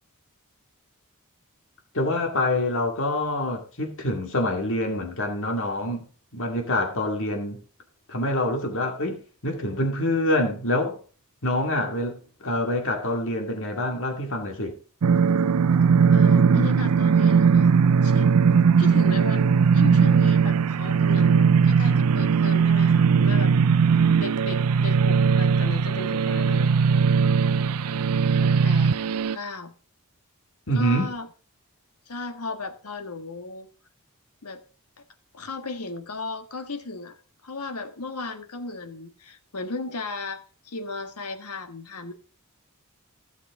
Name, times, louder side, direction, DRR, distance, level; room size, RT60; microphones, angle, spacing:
voice 1, 1.9-6.0 6.3-7.6 8.1-11.0 11.4-14.7 30.7-31.1, left 1 dB, 60° left, 2.2 m, -26 dB
sound 1, 15.0-29.4, right 6 dB, 80° right, 0.5 m, -19 dB
voice 2, 16.1-17.7 18.0-18.3 18.8-23.5 24.1-27.0 28.4-29.7 30.7-31.3 32.1-33.7 34.4-34.6 35.3-37.2 37.4-42.1, left 3 dB, 90° left, 1.5 m, -35 dB
15.5 x 6.6 x 3.6 m
head